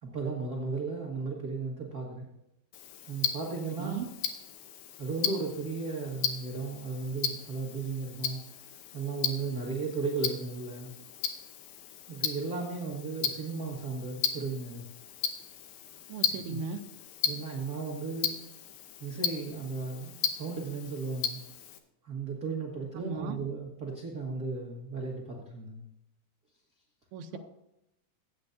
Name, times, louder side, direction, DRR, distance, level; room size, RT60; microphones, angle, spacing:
voice 1, 0.0-2.3 3.1-4.0 5.0-8.4 8.9-10.9 12.1-14.8 16.5-16.6 17.2-18.4 19.0-21.4 22.0-25.8, right 4 dB, 55° right, -3 dB, 1.0 m, -35 dB
Tick-tock, 2.7-21.8, left 8 dB, 75° left, 2.6 m, -36 dB
voice 2, 16.1-16.8 23.0-23.4 27.1-27.4, right 5 dB, 80° right, 6 dB, 2.7 m, -37 dB
17.5 x 9.1 x 2.7 m, 0.85 s
omnidirectional pair, 4.5 m